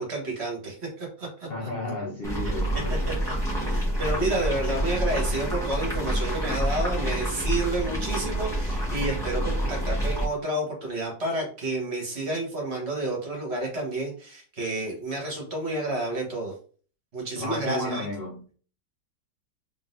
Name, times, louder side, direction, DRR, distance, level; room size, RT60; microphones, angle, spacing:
voice 1, 0.0-1.5 3.1-3.3 3.7-16.6 17.1-18.1, right 2 dB, 40° right, 1.6 m, -30 dB
voice 2, 1.5-3.2 17.4-18.5, left 1 dB, 50° left, 0.8 m, -33 dB
sound 1, 2.2-10.2, right 1 dB, ahead, 1.3 m, -27 dB
3.9 x 3.6 x 2.6 m
omnidirectional pair, 1.7 m